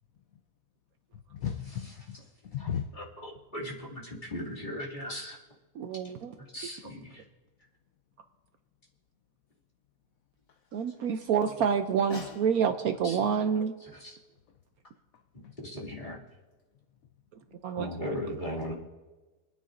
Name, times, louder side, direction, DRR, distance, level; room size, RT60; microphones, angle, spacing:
voice 1, 1.1-2.2 2.4-2.9 12.1-12.4 15.1-15.5, left 8 dB, 65° left, 7 dB, 0.9 m, -36 dB
voice 2, 2.9-5.4 6.4-7.2 13.0-13.2 13.8-14.1 15.3-16.2 17.8-18.7, equal, 25° left, -6 dB, 2.6 m, -38 dB
voice 3, 5.8-6.3 10.7-13.7 17.6-17.9, right 7 dB, 70° right, 7 dB, 1.0 m, -28 dB
28.0 x 10.0 x 2.6 m, 1.2 s
omnidirectional pair, 1.8 m